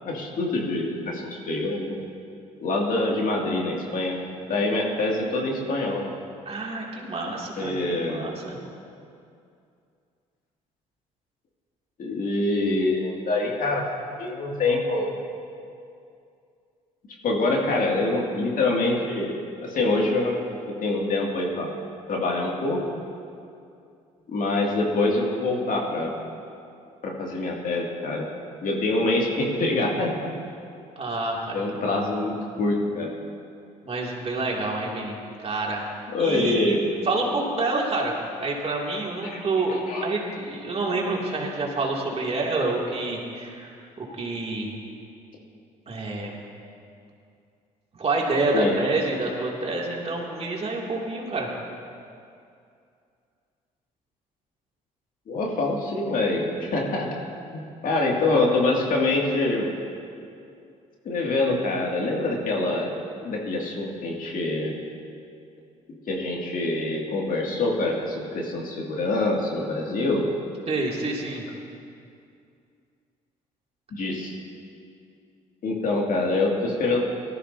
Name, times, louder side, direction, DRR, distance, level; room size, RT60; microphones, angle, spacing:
voice 1, 0.0-1.9 2.6-4.2 4.5-6.1 7.6-8.2 12.0-13.8 14.2-15.1 17.2-19.4 19.6-20.4 20.8-21.7 22.1-23.0 24.3-26.1 27.0-28.3 28.6-30.1 31.5-33.1 36.1-36.8 39.2-40.1 48.5-48.8 55.3-57.1 57.5-59.7 61.0-62.9 63.2-64.8 66.1-70.3 73.9-74.3 75.6-77.0, left 2 dB, 60° left, -1 dB, 2.4 m, -25 dB
voice 2, 6.5-8.6 31.0-32.1 33.8-35.9 36.2-38.1 38.4-39.7 40.0-44.7 45.9-46.3 47.9-51.5 70.7-71.4, right 2 dB, 40° right, -2 dB, 2.6 m, -28 dB
18.0 x 13.0 x 2.8 m, 2.5 s
hypercardioid pair, 60°, 16 cm